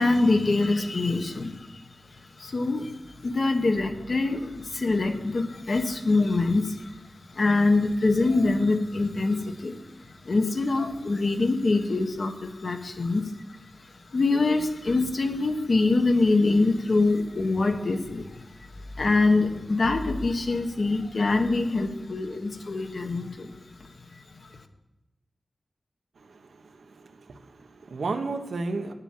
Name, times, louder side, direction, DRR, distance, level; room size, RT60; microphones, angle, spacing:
voice 1, 0.0-1.8 2.1-7.0 7.3-13.3 13.8-18.7 18.9-23.5 23.8-23.9, left 3 dB, 55° left, 6 dB, 1.1 m, -24 dB
voice 2, 26.3-26.7 27.2-28.9, right 3 dB, 85° right, 6 dB, 1.1 m, -33 dB
9.9 x 8.1 x 7.3 m, 1.0 s
wide cardioid pair, 120°, 0 cm